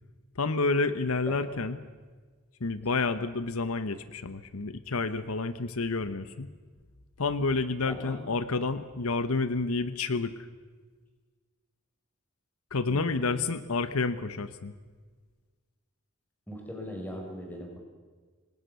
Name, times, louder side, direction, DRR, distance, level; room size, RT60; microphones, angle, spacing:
voice 1, 0.4-1.8 2.6-6.5 7.2-10.5 12.7-14.7, left 3 dB, 80° left, 13 dB, 1.0 m, -29 dB
voice 2, 1.3-1.6 7.9-8.2 12.9-13.4 16.5-17.8, equal, 10° left, 1 dB, 5.3 m, -40 dB
26.5 x 19.0 x 6.9 m, 1.5 s
head